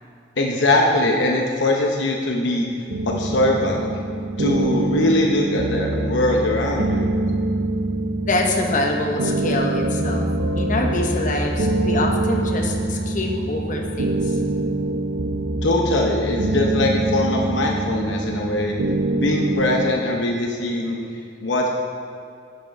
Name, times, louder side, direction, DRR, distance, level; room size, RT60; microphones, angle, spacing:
voice 1, 0.4-2.7 3.0-3.9 4.4-7.1 15.6-18.7 19.1-21.7, left 1 dB, 75° left, 1 dB, 0.8 m, -21 dB
sound 1, 2.9-19.9, right 2 dB, 85° right, 0.6 m, -24 dB
voice 2, 8.3-10.2 10.6-14.4, left 2 dB, 45° left, 1 dB, 0.9 m, -25 dB
sound 2, 9.8-17.4 20.4-20.5, left 1 dB, 25° right, 1.7 m, -33 dB
10.5 x 6.5 x 4.5 m, 2.4 s
head